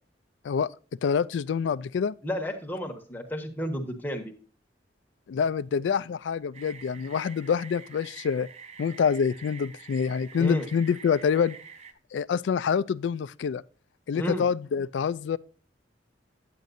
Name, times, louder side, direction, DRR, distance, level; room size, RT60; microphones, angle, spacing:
voice 1, 1.0-2.1 5.3-8.5 8.8-11.6 12.1-13.6 14.1-15.4, left 6 dB, 70° left, 0.3 m, -26 dB
voice 2, 2.2-4.3 10.4-10.7 14.1-14.5, equal, 10° left, 1.3 m, -32 dB
sound 1, 6.5-11.9, right 6 dB, 35° right, 0.7 m, -47 dB
9.3 x 9.0 x 2.6 m
head